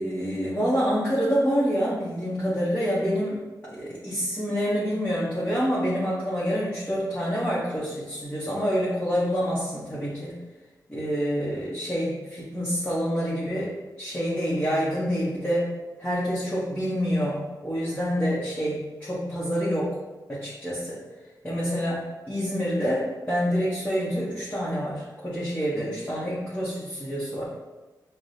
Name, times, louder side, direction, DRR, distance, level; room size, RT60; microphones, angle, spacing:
voice 1, 0.0-10.4 10.9-15.7 16.0-19.9 20.3-21.0 21.4-27.4, equal, 15° left, -9 dB, 1.1 m, -27 dB
6.1 x 2.3 x 2.7 m, 1.2 s
wide cardioid pair, 85°, 7 cm